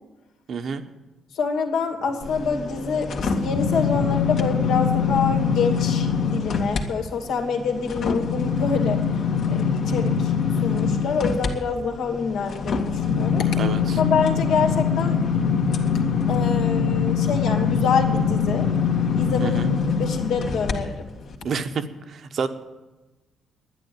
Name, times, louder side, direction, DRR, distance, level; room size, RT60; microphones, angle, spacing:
voice 1, 0.5-0.8 13.6-14.0 19.4-19.7 21.4-22.5, right 5 dB, 60° right, 8 dB, 1.2 m, -28 dB
voice 2, 1.3-9.0 9.5-10.3 10.6-13.6 13.9-15.2 16.3-18.7 19.2-19.6 20.0-21.1, left 5 dB, 85° left, 3 dB, 2.4 m, -26 dB
sound 1, 2.2-6.8 7.2-20.7 21.2-21.4, left 6 dB, 65° left, 1.8 m, -23 dB
11.0 x 10.0 x 9.4 m, 1.1 s
cardioid pair, 90°, 0 cm